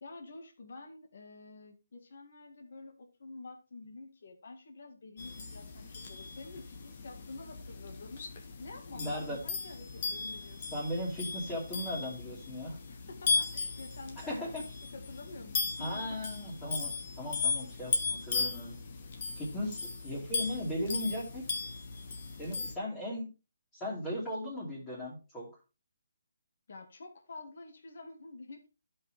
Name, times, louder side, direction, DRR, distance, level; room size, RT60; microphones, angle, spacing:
voice 1, 0.0-10.9 12.9-16.2 26.7-28.7, left 3 dB, 60° left, 4 dB, 1.9 m, -49 dB
sound 1, 5.2-22.7, left 4 dB, 40° left, 1.5 m, -37 dB
voice 2, 8.9-9.4 10.7-12.8 14.2-14.6 15.8-16.9 17.2-18.7 19.4-21.6 22.4-23.3 23.7-25.5, left 1 dB, 15° left, -8 dB, 2.8 m, -37 dB
12.0 x 5.6 x 3.5 m, 0.29 s
hypercardioid pair, 160°, 0 cm